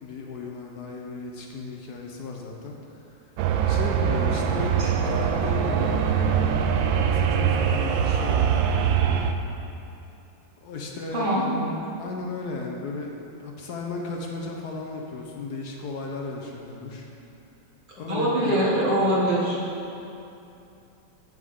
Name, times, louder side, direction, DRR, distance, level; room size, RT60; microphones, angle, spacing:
voice 1, 0.0-3.1 3.7-9.2 10.6-11.6 12.0-17.1 18.0-18.6, left 3 dB, 60° left, 0 dB, 1.2 m, -35 dB
sound 1, 3.4-9.3, right 7 dB, 80° right, 1.3 m, -23 dB
voice 2, 11.1-11.7 14.3-14.4 18.1-19.6, right 1 dB, 25° right, -6 dB, 1.7 m, -23 dB
9.6 x 9.3 x 3.7 m, 2.7 s
omnidirectional pair, 2.2 m